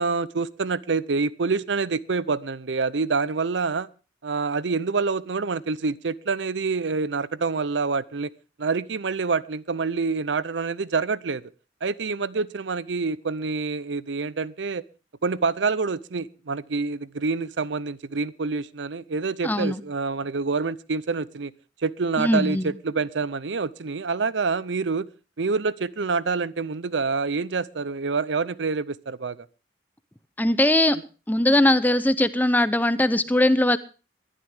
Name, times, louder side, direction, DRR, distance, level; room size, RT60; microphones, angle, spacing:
voice 1, 0.0-3.9 4.2-8.3 8.6-11.4 11.8-14.8 15.2-21.5 21.8-25.1 25.4-29.5, right 4 dB, 80° right, 19 dB, 0.7 m, -27 dB
voice 2, 19.4-19.8 22.2-22.7 30.4-31.0 31.3-33.8, left 1 dB, 10° left, 14 dB, 0.7 m, -20 dB
21.5 x 11.0 x 3.5 m, 0.34 s
head